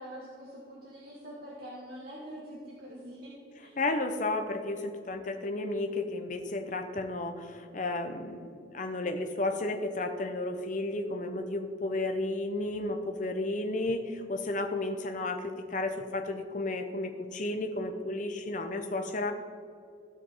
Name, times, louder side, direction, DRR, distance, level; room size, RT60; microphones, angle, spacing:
voice 1, 0.0-3.8, equal, 50° right, -5 dB, 1.6 m, -45 dB
voice 2, 3.8-19.3, left 2 dB, 40° left, 6 dB, 0.8 m, -33 dB
15.5 x 5.2 x 4.5 m, 2.3 s
head